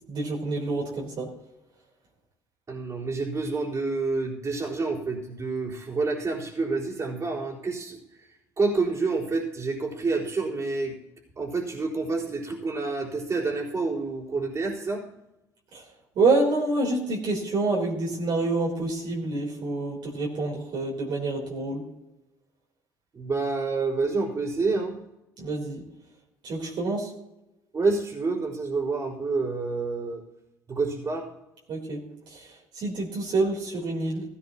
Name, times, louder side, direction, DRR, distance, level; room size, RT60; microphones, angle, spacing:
voice 1, 0.1-1.3 15.7-15.8 16.2-21.8 25.4-25.8 26.4-27.1 31.7-32.0 32.3-32.5 32.7-34.2, right 3 dB, 60° right, -2 dB, 3.8 m, -27 dB
voice 2, 2.7-8.0 8.6-11.0 11.4-15.0 23.1-25.0 27.7-30.2 30.7-31.3, right 3 dB, 35° right, -3 dB, 4.3 m, -28 dB
16.0 x 15.5 x 3.0 m, 0.94 s
hypercardioid pair, 60°, 9 cm